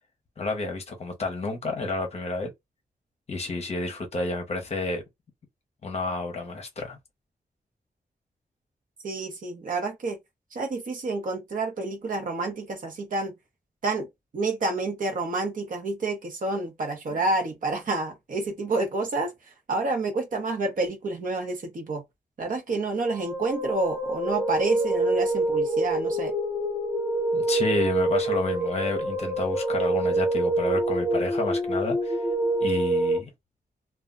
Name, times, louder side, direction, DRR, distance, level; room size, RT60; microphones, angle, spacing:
voice 1, 0.4-2.5 3.3-5.0 5.8-7.0 27.3-32.2 32.6-33.3, left 3 dB, 40° left, 0.7 m, -30 dB
voice 2, 9.0-10.2 10.5-13.3 13.8-14.1 14.3-19.3 19.7-22.0 22.4-26.3, right 3 dB, 55° right, 0.8 m, -29 dB
sound 1, 22.9-33.2, right 2 dB, 5° right, 0.6 m, -26 dB
2.2 x 2.1 x 3.6 m
wide cardioid pair, 175°, 16 cm